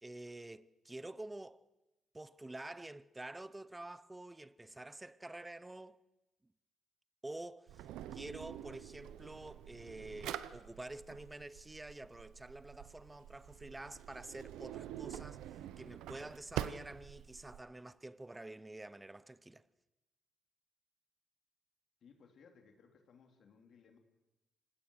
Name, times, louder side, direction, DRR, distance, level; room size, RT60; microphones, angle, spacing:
voice 1, 0.0-1.7 2.1-6.0 7.2-19.6, right 2 dB, 15° right, 0.8 m, -48 dB
Drawer open or close, 7.7-17.6, right 12 dB, 90° right, 0.8 m, -46 dB
voice 2, 22.0-24.0, left 6 dB, 60° left, 3.3 m, -62 dB
27.0 x 18.0 x 6.5 m
cardioid pair, 90°, 0 cm